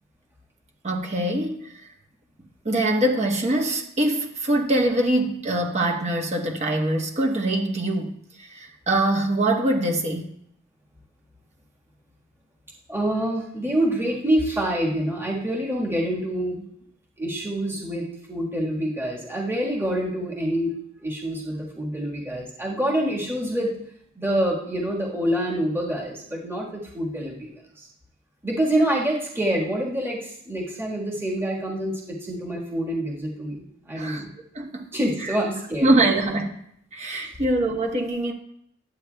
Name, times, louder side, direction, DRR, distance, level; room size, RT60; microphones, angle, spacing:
voice 1, 0.8-1.9 2.6-10.3 33.9-34.2 34.5-34.9 35.2-35.4 35.8-36.6 36.9-38.3, right 1 dB, 35° right, 1 dB, 1.1 m, -23 dB
voice 2, 12.9-16.7 17.2-23.8 24.1-27.9 28.4-34.3 34.9-35.9, right 1 dB, 10° right, -3 dB, 1.5 m, -26 dB
10.5 x 8.5 x 2.3 m, 0.70 s
head